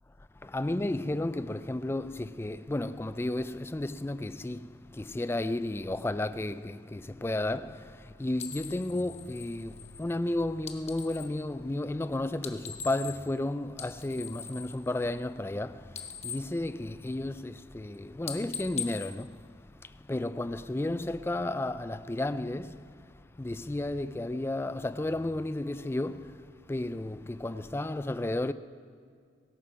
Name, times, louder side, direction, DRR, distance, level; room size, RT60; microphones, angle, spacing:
voice 1, 0.4-28.5, left 1 dB, 15° left, 0.3 m, -33 dB
sound 1, 8.4-11.4 12.3-13.4 13.7-15.6 15.8-17.4 17.7-18.0 18.2-20.1, left 7 dB, 35° left, 0.9 m, -42 dB
17.5 x 16.5 x 4.8 m
head